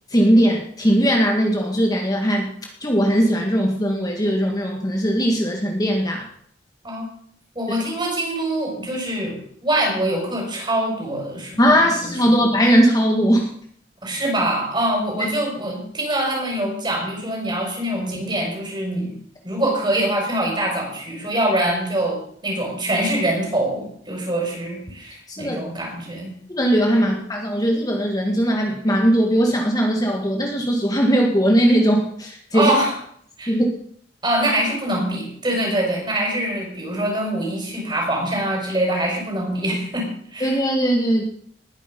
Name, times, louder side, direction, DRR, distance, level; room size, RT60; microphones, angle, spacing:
voice 1, 0.1-2.5 2.8-6.2 11.6-13.5 25.3-25.6 26.5-32.7 33.5-33.7 40.4-41.2, equal, 20° left, 1 dB, 1.9 m, -19 dB
voice 2, 7.5-9.4 9.6-11.6 12.0-12.1 14.0-19.1 19.4-26.3 26.9-27.2 32.5-32.9 33.4-33.6 34.2-40.1 40.3-40.6, right 1 dB, 25° right, 0 dB, 5.9 m, -24 dB
20.0 x 10.5 x 5.4 m, 0.65 s
head